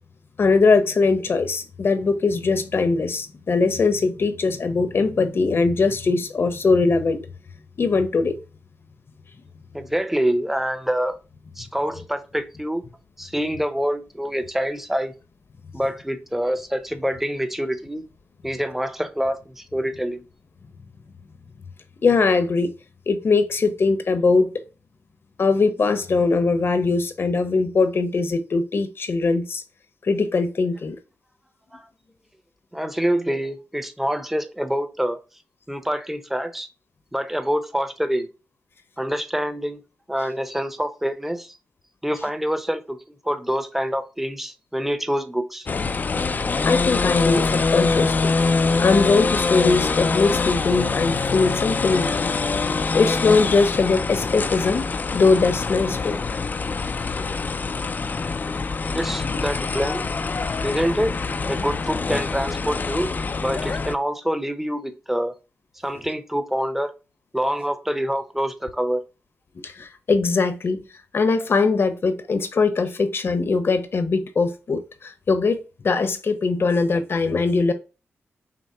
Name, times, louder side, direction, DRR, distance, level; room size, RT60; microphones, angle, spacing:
voice 1, 0.4-7.2 7.8-8.4 22.0-22.7 23.1-24.5 25.4-29.6 30.0-31.0 46.4-48.3 48.8-52.3 52.9-56.2 69.6-70.8 71.1-77.7, left 4 dB, 55° left, 0.8 m, -21 dB
voice 2, 9.7-11.2 11.6-12.8 13.2-15.1 15.7-18.0 18.4-20.3 31.7-31.8 32.7-35.2 35.7-36.7 37.1-38.3 39.0-39.8 40.1-41.6 42.0-43.0 43.2-45.7 58.8-60.1 60.6-61.2 61.5-63.1 63.4-65.3 65.8-66.9 67.3-69.0, equal, 5° right, 0.7 m, -26 dB
sound 1, 45.7-63.9, left 4 dB, 40° left, 0.4 m, -24 dB
6.1 x 2.1 x 4.2 m
cardioid pair, 75°, 5 cm